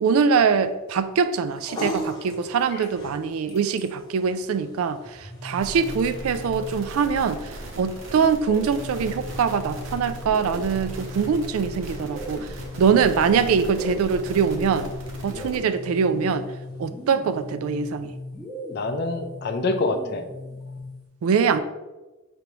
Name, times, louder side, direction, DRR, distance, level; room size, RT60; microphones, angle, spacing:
voice 1, 0.0-12.5 12.8-14.9 15.2-16.4 16.8-18.1 21.2-21.6, right 6 dB, 90° right, 12 dB, 0.3 m, -23 dB
sound 1, 1.3-17.8, equal, 20° left, 1.0 m, -43 dB
sound 2, 5.0-7.2 8.1-21.1, left 2 dB, ahead, 0.6 m, -39 dB
sound 3, 5.6-15.6, right 1 dB, 65° right, 0.8 m, -38 dB
voice 2, 15.3-15.6 18.7-20.2 21.5-21.6, left 2 dB, 50° left, 7 dB, 0.4 m, -27 dB
5.0 x 3.4 x 3.0 m, 1.1 s
head